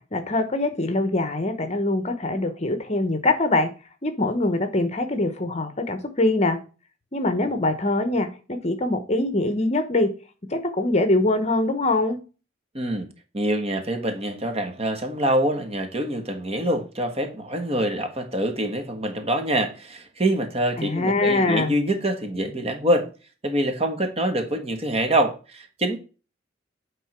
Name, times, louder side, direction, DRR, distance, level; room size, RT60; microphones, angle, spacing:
voice 1, 0.1-3.7 4.0-6.6 7.1-10.1 10.5-12.2 20.8-21.7, left 2 dB, 35° left, 1.0 m, -23 dB
voice 2, 12.7-13.1 13.3-23.1 23.4-26.0, right 1 dB, 35° right, 1.4 m, -25 dB
9.2 x 3.7 x 5.9 m
head